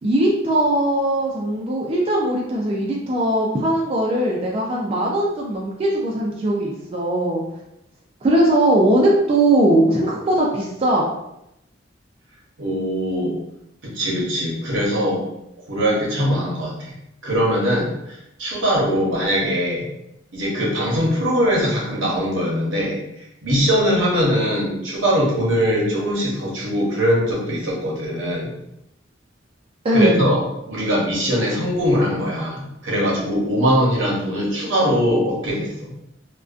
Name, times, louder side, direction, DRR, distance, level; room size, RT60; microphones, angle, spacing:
voice 1, 0.0-7.4 8.2-11.0 29.8-30.3, right 1 dB, 30° right, -3 dB, 0.3 m, -19 dB
voice 2, 12.6-13.4 13.8-15.2 15.7-16.9 17.2-19.9 20.3-23.0 23.4-28.5 29.9-35.9, equal, 80° right, -4 dB, 0.8 m, -21 dB
2.3 x 2.1 x 2.4 m, 0.84 s
head